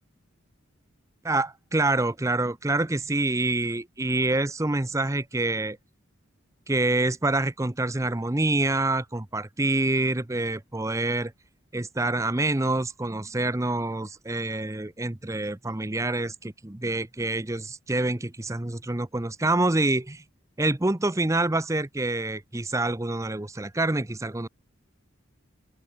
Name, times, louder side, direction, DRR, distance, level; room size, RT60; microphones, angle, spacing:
voice 1, 1.2-5.8 6.7-11.3 11.7-20.2 20.6-24.5, right 2 dB, 15° right, 0.7 m, -26 dB
open air
head